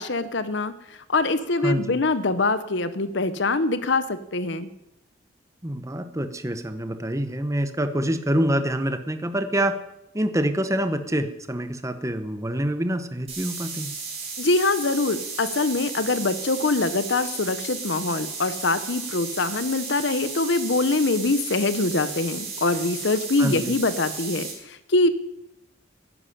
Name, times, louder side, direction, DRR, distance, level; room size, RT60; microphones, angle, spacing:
voice 1, 0.0-4.7 14.4-25.1, left 3 dB, 60° left, 13 dB, 0.8 m, -24 dB
voice 2, 1.6-2.0 5.6-9.7 10.1-13.9 23.4-23.7, right 1 dB, 15° right, 9 dB, 1.0 m, -26 dB
sound 1, 13.3-24.5, right 4 dB, 30° right, 4.5 m, -34 dB
11.0 x 10.5 x 10.0 m, 0.88 s
head